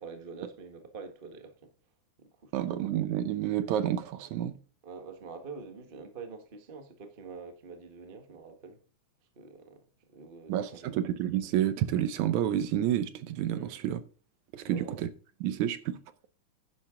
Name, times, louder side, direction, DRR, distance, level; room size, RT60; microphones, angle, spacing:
voice 1, 0.0-1.7 2.2-2.7 4.8-8.8 9.3-10.9 13.5-13.7 14.6-15.0, right 5 dB, 40° right, 0.7 m, -46 dB
voice 2, 2.5-4.5 10.5-14.0 14.5-15.1 15.4-16.0, right 11 dB, 75° right, 2.1 m, -29 dB
11.0 x 10.0 x 3.8 m
omnidirectional pair, 3.6 m